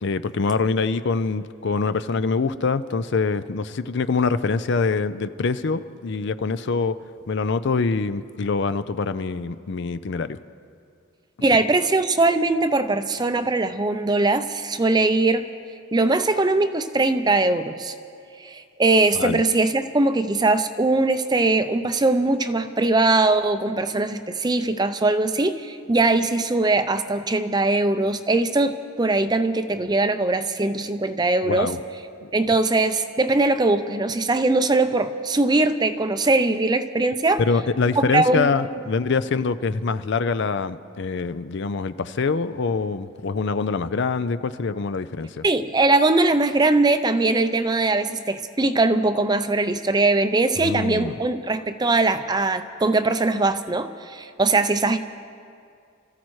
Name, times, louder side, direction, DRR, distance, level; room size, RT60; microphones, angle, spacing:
voice 1, 0.0-7.0 7.3-10.4 19.1-19.4 31.4-31.8 32.2-32.3 37.4-45.4 50.6-51.1, left 4 dB, 55° left, 13 dB, 0.5 m, -24 dB
voice 2, 11.4-15.5 15.9-17.9 18.4-31.7 32.3-37.4 38.0-38.5 45.4-55.0, right 2 dB, 20° right, 10 dB, 0.5 m, -21 dB
29.0 x 14.5 x 3.2 m, 2.3 s
head